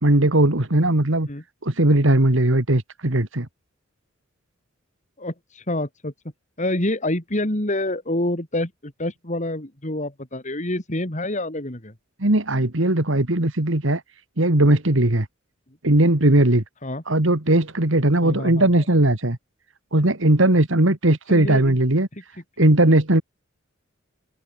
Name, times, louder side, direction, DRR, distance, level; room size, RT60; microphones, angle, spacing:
voice 1, 0.0-1.3 1.6-3.5 12.2-14.0 14.4-15.3 15.8-16.6 17.1-19.4 19.9-22.1 22.6-23.2, right 1 dB, 70° right, 2.4 m, -18 dB
voice 2, 5.2-6.1 6.6-11.9 16.8-17.0 18.2-18.8 21.3-21.8, left 1 dB, 35° left, 3.7 m, -27 dB
head